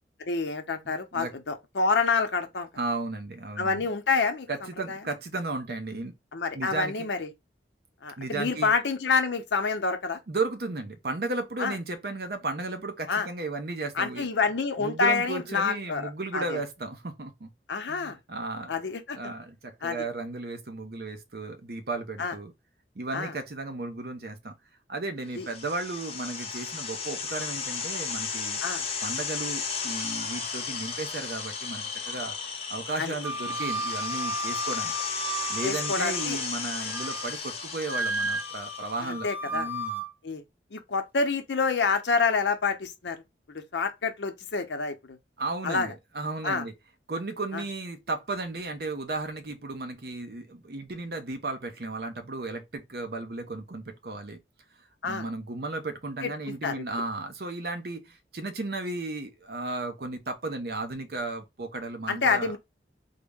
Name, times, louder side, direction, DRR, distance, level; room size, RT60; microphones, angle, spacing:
voice 1, 0.2-2.7 3.6-5.0 6.3-7.3 8.0-10.2 11.6-11.8 13.1-13.3 13.9-16.6 17.7-18.2 18.7-19.3 19.8-20.1 22.2-22.4 23.1-23.3 25.4-25.5 28.6-28.9 33.0-33.1 35.6-36.4 39.0-39.7 40.2-40.4 40.7-43.2 43.5-45.2 45.6-45.9 46.4-46.6 47.5-47.6 55.0-55.3 56.2-56.8 62.1-62.6, left 4 dB, 85° left, 0.7 m, -28 dB
voice 2, 0.8-1.3 2.8-3.9 4.5-6.1 6.5-7.1 8.2-8.7 10.3-14.3 14.8-17.5 17.9-18.7 19.1-22.5 22.9-24.5 24.9-28.6 29.0-32.4 32.7-34.9 35.5-40.0 45.4-46.7 47.1-54.4 55.0-62.5, right 2 dB, 60° right, 0.7 m, -34 dB
sound 1, 25.3-39.1, left 5 dB, 35° left, 0.6 m, -34 dB
Wind instrument woodwind instrument, 33.2-36.2 36.6-37.4 37.9-40.1, right 2 dB, 10° right, 0.4 m, -33 dB
3.6 x 2.1 x 3.5 m
head